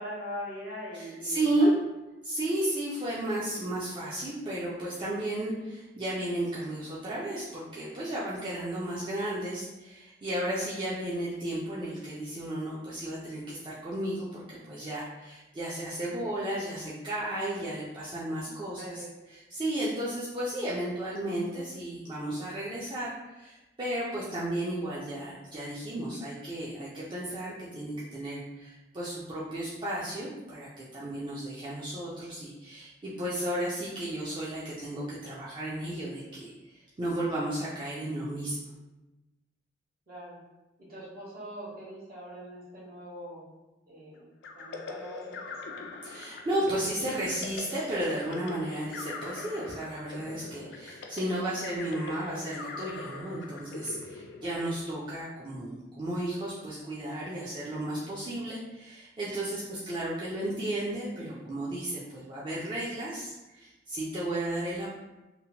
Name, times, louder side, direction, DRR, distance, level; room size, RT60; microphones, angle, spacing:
voice 1, 0.0-1.7 10.8-10.9 18.5-19.1 40.1-40.4 40.8-43.4 43.9-44.2 44.5-45.8 54.4-54.5, equal, 55° right, -6 dB, 1.0 m, -42 dB
voice 2, 0.9-1.7 2.2-38.6 46.0-64.9, right 1 dB, 25° right, -8 dB, 0.4 m, -33 dB
sound 1, 44.4-55.0, left 3 dB, 65° left, 0.3 m, -42 dB
2.8 x 2.0 x 2.8 m, 1.1 s
head